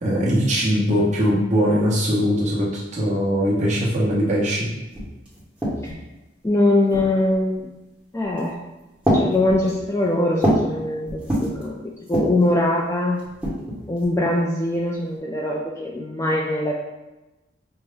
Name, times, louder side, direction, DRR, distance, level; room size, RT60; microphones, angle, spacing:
voice 1, 0.0-4.7, equal, 40° right, -6 dB, 1.1 m, -21 dB
sound 1, 4.6-4.7 4.9-6.1 6.9-7.4 8.2-8.6 9.0-10.8 11.1-11.6 12.0-12.5 13.2-14.2, equal, 5° right, 1.0 m, -25 dB
voice 2, 6.4-7.8 8.1-8.6 9.1-13.3 13.9-16.7, left 1 dB, 15° left, -2 dB, 0.3 m, -22 dB
5.2 x 2.1 x 3.4 m, 1.0 s
head